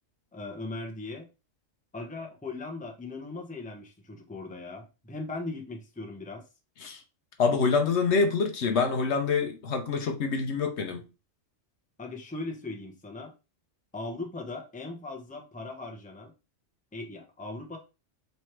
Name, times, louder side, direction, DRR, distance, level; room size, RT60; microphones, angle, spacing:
voice 1, 0.3-1.3 1.9-6.4 12.0-13.3 13.9-16.3 16.9-17.8, left 2 dB, 10° left, 0.7 m, -39 dB
voice 2, 7.4-11.0, left 4 dB, 65° left, 0.9 m, -26 dB
3.3 x 3.1 x 4.4 m
omnidirectional pair, 1.3 m